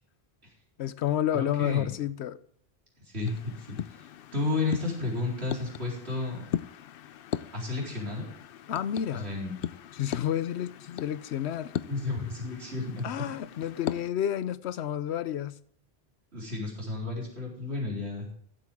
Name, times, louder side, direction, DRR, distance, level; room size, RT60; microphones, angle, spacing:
voice 1, 0.8-2.4 8.7-9.3 9.9-11.7 13.0-15.6, left 10 dB, 90° left, 0.9 m, -30 dB
voice 2, 1.3-1.8 3.0-4.1 4.3-6.4 7.5-8.3 9.1-9.5 11.9-13.2 16.3-18.3, left 3 dB, 80° right, 4.3 m, -32 dB
sound 1, 3.2-14.1, left 10 dB, 65° left, 0.7 m, -39 dB
14.5 x 8.6 x 3.6 m
omnidirectional pair, 1.1 m